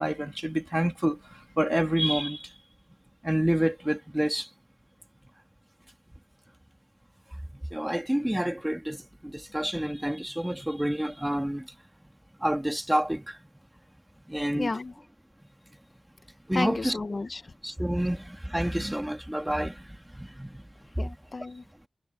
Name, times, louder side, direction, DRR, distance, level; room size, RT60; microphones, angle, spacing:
voice 1, 0.0-2.5 3.2-4.5 7.7-11.7 12.4-13.4 14.3-14.7 16.5-17.0 17.6-19.9 20.1-20.6 21.0-21.1, right 1 dB, 10° right, 2.2 m, -28 dB
voice 2, 14.5-14.9 16.5-17.5 21.0-21.6, left 3 dB, 45° left, 0.8 m, -32 dB
wide cardioid pair, 85°, 0 cm